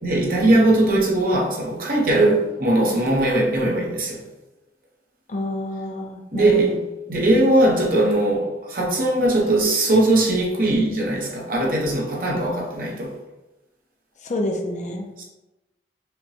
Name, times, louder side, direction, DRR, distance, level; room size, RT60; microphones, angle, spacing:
voice 1, 0.0-4.2 6.3-6.8 7.1-13.1 15.2-15.3, right 1 dB, 55° right, -2 dB, 0.9 m, -20 dB
voice 2, 5.3-6.7 14.3-15.1, left 1 dB, 45° left, 2 dB, 0.5 m, -28 dB
5.2 x 2.2 x 2.7 m, 1.0 s
head